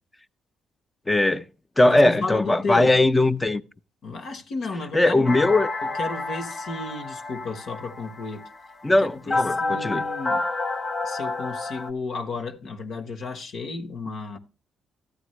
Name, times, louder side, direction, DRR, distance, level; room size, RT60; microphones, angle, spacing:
voice 1, 1.1-1.4 1.8-3.6 4.9-5.7 8.8-10.0, left 2 dB, 15° left, 0.7 m, -19 dB
voice 2, 1.9-3.0 4.0-5.2 6.0-8.5 9.0-10.5 11.0-14.4, left 3 dB, 65° left, 1.3 m, -33 dB
sound 1, 5.3-11.9, left 3 dB, 35° left, 0.9 m, -29 dB
13.0 x 9.0 x 3.2 m
cardioid pair, 90°, 0 cm